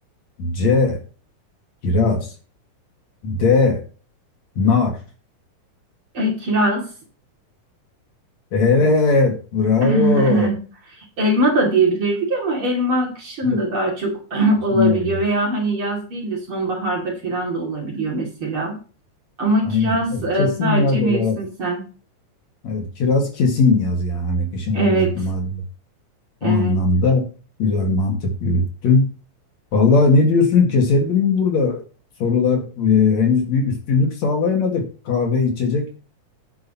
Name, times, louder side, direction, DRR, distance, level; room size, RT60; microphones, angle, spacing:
voice 1, 0.4-1.0 1.8-2.3 3.2-3.8 4.6-5.0 8.5-10.5 13.4-13.6 14.7-15.2 19.6-21.3 22.6-25.6 26.4-27.2 27.6-29.1 29.7-31.8 32.2-35.9, left 4 dB, 60° left, 2 dB, 3.0 m, -19 dB
voice 2, 6.1-6.8 9.8-10.6 11.0-18.8 19.4-21.8 24.7-25.1 26.4-26.8, right 2 dB, 40° right, -1 dB, 3.2 m, -21 dB
10.0 x 9.5 x 3.0 m, 0.37 s
omnidirectional pair, 3.9 m